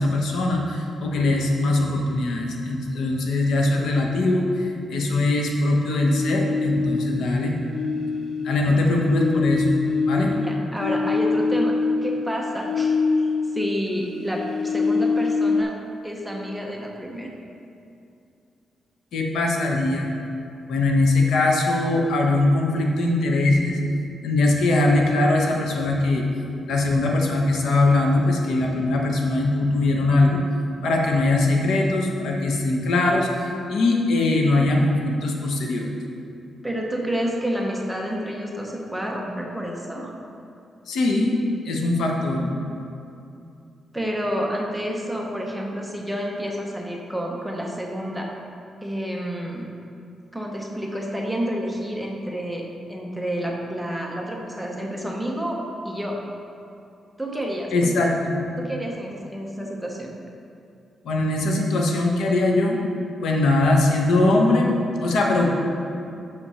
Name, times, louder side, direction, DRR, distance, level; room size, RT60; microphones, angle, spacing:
voice 1, 0.0-7.5 8.4-9.8 10.1-10.3 19.1-20.1 20.7-23.8 24.2-26.2 26.7-30.4 30.8-35.9 40.9-41.3 41.6-42.5 57.7-58.4 61.0-62.8 63.2-64.7 65.0-65.6, left 2 dB, 80° left, 0 dB, 1.0 m, -21 dB
sound 1, 6.0-7.3 7.7-13.8 14.0-15.6, left 4 dB, 50° left, 0.5 m, -24 dB
voice 2, 8.6-9.2 10.3-11.8 12.0-13.3 13.5-15.7 16.0-17.3 36.6-40.2 43.9-48.3 48.8-49.7 50.3-55.6 55.8-56.2 57.2-58.1 58.6-60.1, equal, 5° right, -1 dB, 0.8 m, -29 dB
6.3 x 5.9 x 5.5 m, 2.6 s
wide cardioid pair, 145°, 0 cm